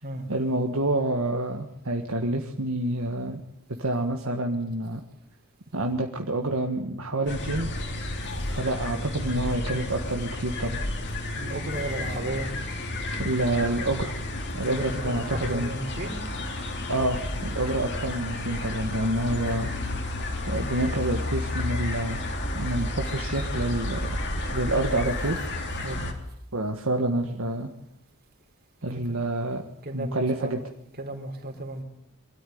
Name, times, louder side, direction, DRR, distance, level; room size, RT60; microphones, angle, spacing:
voice 1, 0.3-3.4 3.8-5.0 5.7-7.7 8.5-10.8 13.2-14.2 14.5-15.7 16.9-19.7 20.5-22.2 22.5-25.4 26.5-27.7 28.8-29.7 29.9-30.6, right 1 dB, 65° right, 3 dB, 1.6 m, -28 dB
sound 1, 7.3-26.1, left 1 dB, 50° left, 3.2 m, -31 dB
voice 2, 11.3-12.5 14.6-16.2 25.8-26.0 28.9-29.1 29.8-30.5 31.0-31.8, right 2 dB, 45° right, 3 dB, 4.1 m, -34 dB
24.0 x 13.0 x 9.4 m, 0.77 s
head